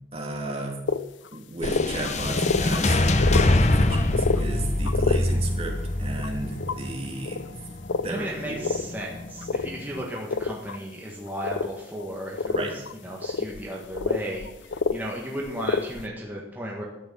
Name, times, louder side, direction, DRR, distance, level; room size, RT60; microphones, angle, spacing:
voice 1, 0.1-0.8 1.3-7.4 8.0-8.7 12.5-12.7, right 2 dB, 30° right, 1 dB, 2.2 m, -34 dB
sound 1, 0.9-1.0 1.3-1.4 1.6-2.8 3.1-3.5 3.9-4.4 4.9-5.2 6.2-6.8 7.3-7.5 7.9-8.1 8.6-9.0 9.4-9.7 10.2-10.8 11.4-11.7 12.0-12.1 12.4-12.9 13.2-15.0 15.5-16.1, left 4 dB, 90° left, 0.6 m, -27 dB
sound 2, 1.6-10.0, left 2 dB, 40° left, 0.8 m, -25 dB
voice 2, 8.1-16.8, equal, 10° right, -3 dB, 1.7 m, -35 dB
12.5 x 6.8 x 8.1 m, 0.93 s
head